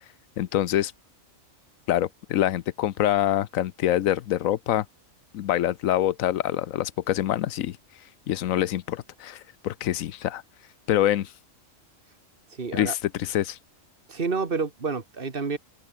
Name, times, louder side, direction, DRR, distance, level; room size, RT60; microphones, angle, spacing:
voice 1, 0.4-0.9 1.9-4.9 5.3-7.8 8.3-10.4 10.9-11.3 12.7-13.6, left 12 dB, 90° left, 1.1 m, -25 dB
voice 2, 12.6-12.9 14.1-15.6, right 4 dB, 45° right, 2.0 m, -29 dB
open air
omnidirectional pair, 1.4 m